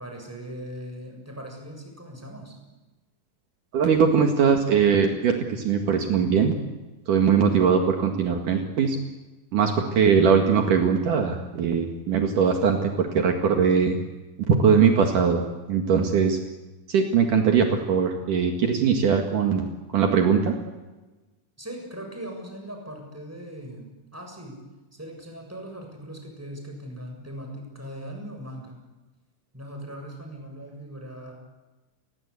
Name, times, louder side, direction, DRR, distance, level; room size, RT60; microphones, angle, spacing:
voice 1, 0.0-2.5 21.6-24.6 24.9-28.8 29.5-31.3, equal, 5° right, 2 dB, 6.8 m, -39 dB
voice 2, 3.7-6.6 7.1-9.0 9.5-14.0 14.5-16.4 16.9-19.7 19.9-20.6, right 6 dB, 65° right, 3 dB, 3.4 m, -21 dB
29.5 x 23.0 x 8.4 m, 1.2 s
omnidirectional pair, 4.1 m